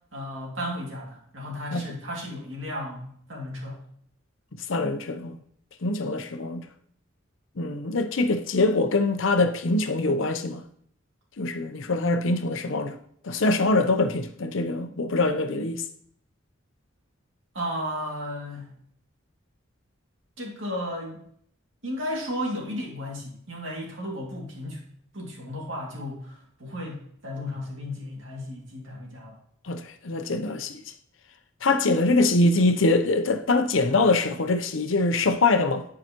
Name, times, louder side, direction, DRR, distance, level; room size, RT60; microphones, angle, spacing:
voice 1, 0.1-3.9 17.5-18.8 20.4-21.2 21.8-24.8 25.1-29.4, equal, 65° right, 2.4 m, -34 dB
voice 2, 4.7-5.4 5.8-6.6 7.6-10.6 11.4-13.0 13.2-15.9 29.6-30.8 31.6-35.9, left 2 dB, 70° left, 0.7 m, -23 dB
10.5 x 4.8 x 3.0 m
head